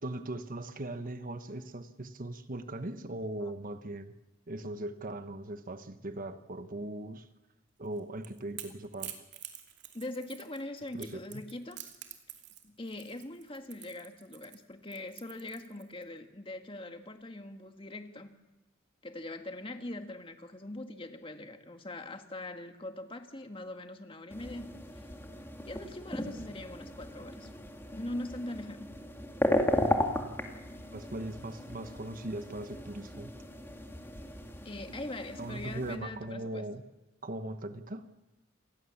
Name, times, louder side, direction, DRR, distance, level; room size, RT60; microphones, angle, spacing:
voice 1, 0.0-4.1 4.5-7.3 7.8-9.1 10.9-11.4 30.9-33.3 35.4-36.8 37.2-38.1, right 1 dB, 45° right, 9 dB, 1.1 m, -39 dB
Crackle / Crack, 7.9-16.0, right 11 dB, 60° right, 2.7 m, -47 dB
voice 2, 9.9-11.8 12.6-18.3 19.0-25.1 25.7-27.5 27.9-28.9 34.6-36.6, left 1 dB, 30° left, 6 dB, 1.9 m, -42 dB
sound 1, 24.3-36.0, left 1 dB, 10° left, 2.4 m, -35 dB
28.0 x 19.5 x 7.3 m, 1.1 s
head